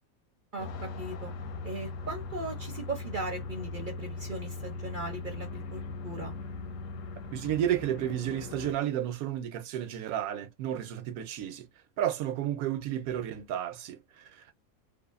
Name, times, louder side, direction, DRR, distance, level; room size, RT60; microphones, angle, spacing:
voice 1, 0.5-1.3 1.6-6.3, right 2 dB, 55° right, 0.5 m, -38 dB
sound 1, 0.6-8.7, left 3 dB, 70° left, 0.9 m, -39 dB
voice 2, 7.3-11.7 12.0-14.5, right 11 dB, 90° right, 1.1 m, -32 dB
2.6 x 2.4 x 2.3 m
omnidirectional pair, 1.5 m